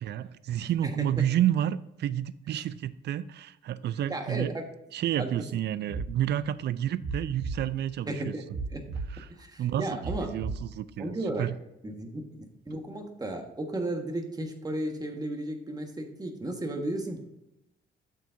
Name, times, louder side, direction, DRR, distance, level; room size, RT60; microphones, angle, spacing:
voice 1, 0.0-4.5 4.9-8.3 9.1-9.3 9.6-11.1 11.4-11.6, right 11 dB, 60° right, 16 dB, 0.4 m, -30 dB
voice 2, 0.6-0.9 4.1-4.6 5.2-5.5 8.1-8.4 8.7-8.8 9.4-10.3 11.0-11.5 11.8-17.2, right 1 dB, 20° right, 4 dB, 1.4 m, -34 dB
sound 1, 5.9-6.1 7.0-7.6 8.5-9.1 10.0-10.6, right 4 dB, 80° right, 1.4 m, -34 dB
8.3 x 6.5 x 2.6 m, 0.89 s
cardioid pair, 90°, 20 cm